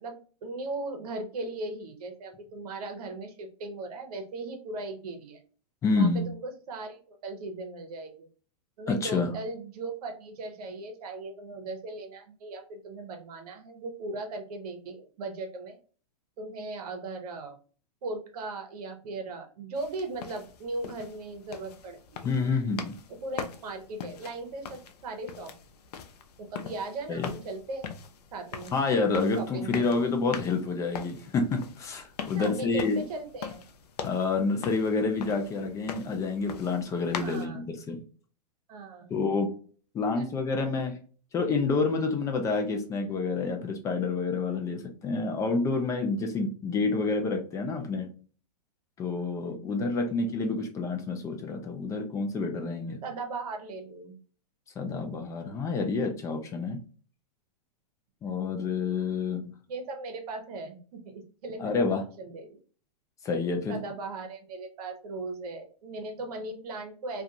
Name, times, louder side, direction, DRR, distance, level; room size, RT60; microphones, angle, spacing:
voice 1, 0.0-5.4 6.0-8.3 8.8-15.8 16.4-17.6 18.0-22.3 23.2-25.5 26.4-27.9 28.3-28.7 29.3-30.0 32.4-33.6 37.1-37.6 38.7-39.2 40.1-40.2 40.6-40.8 49.8-50.1 53.0-54.2 59.7-62.6 63.7-67.2, right 2 dB, 60° right, 5 dB, 0.8 m, -38 dB
voice 2, 5.8-6.3 8.9-9.3 22.2-22.9 27.1-27.3 28.7-33.0 34.0-38.0 39.1-39.5 39.9-41.0 41.3-48.1 49.0-53.0 54.8-56.8 58.2-59.5 61.6-62.0 63.2-63.8, left 4 dB, 15° left, 3 dB, 0.4 m, -28 dB
sound 1, 19.8-37.5, left 7 dB, 70° left, 0.5 m, -42 dB
2.4 x 2.3 x 2.7 m, 0.40 s
hypercardioid pair, 135°, 21 cm